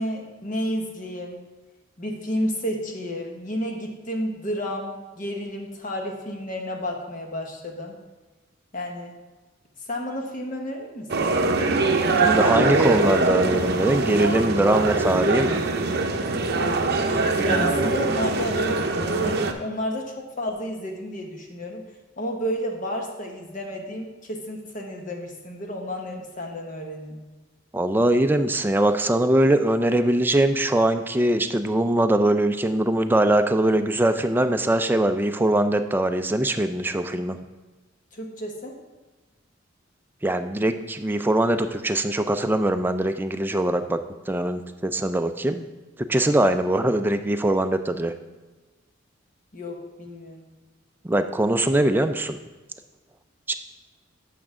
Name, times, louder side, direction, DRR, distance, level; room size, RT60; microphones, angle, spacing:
voice 1, 0.0-1.4 2.0-8.0 8.7-9.2 9.8-11.3 16.6-16.9 17.4-21.8 22.2-27.2 38.1-38.8 49.5-50.5, equal, 40° left, 2 dB, 1.1 m, -31 dB
sound 1, 11.1-19.5, right 3 dB, 55° right, 0.6 m, -23 dB
voice 2, 12.2-15.6 17.5-17.8 27.7-37.4 40.2-44.0 44.3-45.7 46.0-48.1 51.0-52.4 53.5-53.6, right 1 dB, 10° right, 8 dB, 0.3 m, -22 dB
8.5 x 5.9 x 3.7 m, 1.2 s
head